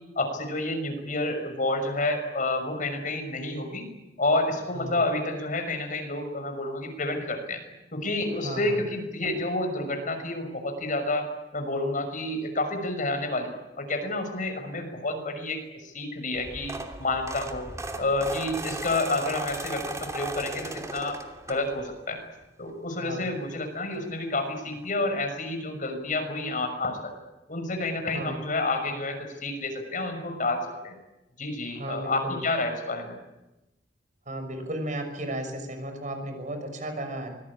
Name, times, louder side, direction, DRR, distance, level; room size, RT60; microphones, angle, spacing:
voice 1, 0.2-3.8 4.2-7.6 7.9-11.3 11.5-13.5 13.8-16.7 17.0-17.7 18.0-21.2 21.5-22.2 22.6-27.1 27.5-29.2 29.4-30.9 31.4-33.2, left 2 dB, 50° left, 6 dB, 6.1 m, -29 dB
voice 2, 8.4-8.8 23.0-23.3 28.1-28.4 31.7-32.4 34.3-37.3, right 1 dB, 45° right, 6 dB, 6.3 m, -34 dB
sound 1, 16.3-22.0 22.4-22.7 23.9-24.0 24.3-24.4 24.7-24.8, right 2 dB, 20° right, 2.8 m, -37 dB
25.5 x 21.5 x 8.7 m, 1.0 s
head